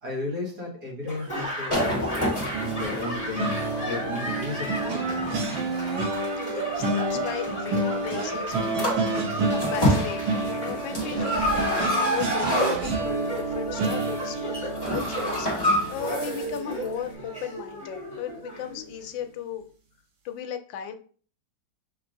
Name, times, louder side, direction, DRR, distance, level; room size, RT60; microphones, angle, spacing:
voice 1, 0.0-2.4 2.8-3.5 3.9-5.7, left 3 dB, 60° right, -4 dB, 2.0 m, -35 dB
Laughter / Applause, 1.0-19.1, right 1 dB, 5° right, 1.4 m, -36 dB
sound 1, 1.7-6.5 7.1-7.3 8.5-8.6 8.8-9.1 9.5-13.3 13.7-14.1 14.3-16.6 16.8-16.9, equal, 15° left, 1.4 m, -28 dB
sound 2, 2.5-17.7 18.1-18.3 18.6-18.8, right 2 dB, 90° right, 1.7 m, -30 dB
voice 2, 6.4-9.2 9.5-19.7 20.2-21.0, left 9 dB, 85° left, 8 dB, 1.3 m, -36 dB
5.9 x 3.0 x 2.5 m, 0.43 s
omnidirectional pair, 2.0 m